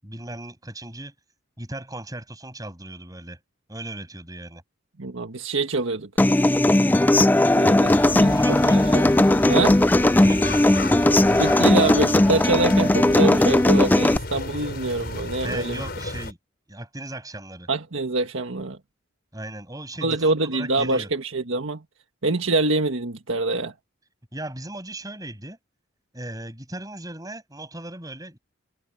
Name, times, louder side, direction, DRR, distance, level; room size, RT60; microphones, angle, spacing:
voice 1, 0.0-1.1 1.6-3.4 3.7-4.6 8.3-8.8 10.2-11.8 15.4-16.4 16.7-17.7 19.3-21.1 24.3-25.6 26.1-28.4, right 1 dB, 15° right, 7.9 m, -37 dB
voice 2, 5.0-6.1 7.5-9.0 9.5-9.8 11.4-15.8 17.7-18.8 20.0-21.8 22.2-23.7, right 2 dB, 70° right, 1.6 m, -25 dB
Human voice / Acoustic guitar, 6.2-14.2, left 1 dB, 10° left, 0.3 m, -18 dB
sound 1, 7.8-16.3, left 2 dB, 50° left, 5.4 m, -33 dB
head